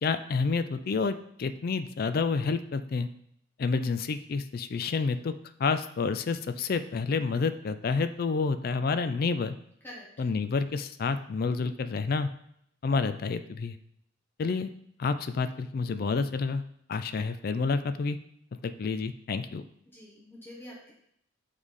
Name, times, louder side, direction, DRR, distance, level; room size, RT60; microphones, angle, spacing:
voice 1, 0.0-3.1 3.6-5.3 5.6-9.6 10.2-12.3 12.8-13.8 14.4-14.7 15.0-16.6 16.9-18.2 18.6-19.6, left 4 dB, 50° left, 11 dB, 0.3 m, -29 dB
voice 2, 19.9-20.9, equal, 10° left, -5 dB, 1.1 m, -46 dB
8.2 x 3.3 x 3.7 m, 0.72 s
head